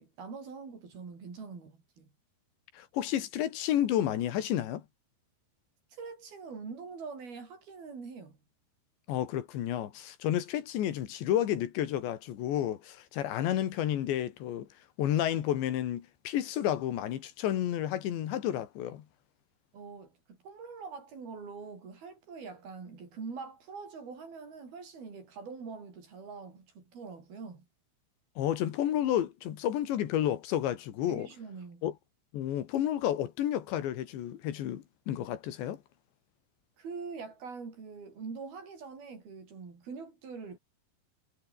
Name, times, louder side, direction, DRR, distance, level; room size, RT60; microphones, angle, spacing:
voice 1, 0.0-2.1 5.9-8.4 19.7-27.7 31.1-31.9 36.8-40.6, right 5 dB, 60° right, 7.6 m, -44 dB
voice 2, 2.7-4.8 9.1-14.7 15.0-19.1 28.4-31.3 31.8-31.9 32.3-35.8, left 11 dB, 80° left, 4.3 m, -31 dB
omnidirectional pair, 5.1 m